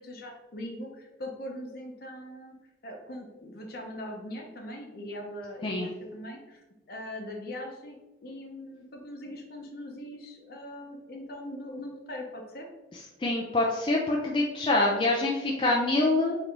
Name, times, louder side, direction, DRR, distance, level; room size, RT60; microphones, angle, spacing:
voice 1, 0.0-2.5 2.8-6.6 6.9-12.7, left 1 dB, 55° left, 1 dB, 0.7 m, -41 dB
voice 2, 12.9-16.4, left 2 dB, 25° left, -2 dB, 0.3 m, -26 dB
4.5 x 3.0 x 2.6 m, 1.1 s
head